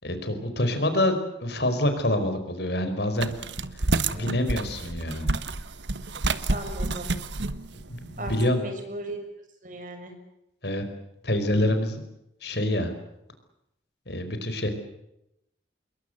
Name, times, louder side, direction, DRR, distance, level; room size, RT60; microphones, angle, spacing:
voice 1, 0.0-3.3 4.1-5.3 7.9-8.6 10.6-10.8 11.2-12.0 12.4-12.9 14.1-14.7, left 1 dB, 65° left, 8 dB, 4.8 m, -26 dB
sound 1, 3.2-8.5, right 2 dB, 80° right, 1.3 m, -29 dB
voice 2, 3.9-4.3 6.5-7.1 8.2-9.2 9.6-10.1, right 1 dB, 45° right, 6 dB, 6.5 m, -37 dB
27.5 x 22.0 x 8.0 m, 0.84 s
head